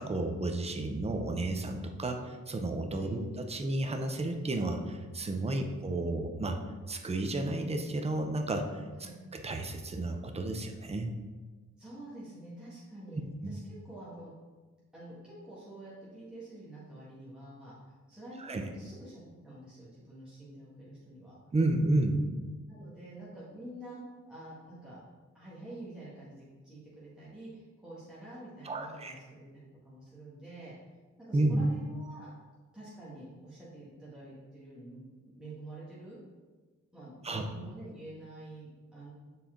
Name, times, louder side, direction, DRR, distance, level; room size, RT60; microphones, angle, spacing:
voice 1, 0.0-6.6 6.9-11.1 13.4-13.6 18.4-18.6 21.5-22.2 28.6-29.1 31.3-31.7 37.2-37.4, right 2 dB, 20° right, 4 dB, 0.6 m, -32 dB
voice 2, 11.8-13.6 13.8-14.3 14.9-17.7 18.1-21.3 22.7-24.0 24.3-25.0 25.3-30.7 31.3-32.3 32.7-35.0 35.3-36.2 36.9-39.1, right 1 dB, 5° right, -9 dB, 1.7 m, -48 dB
7.1 x 4.2 x 3.8 m, 1.3 s
wide cardioid pair, 120°, 30 cm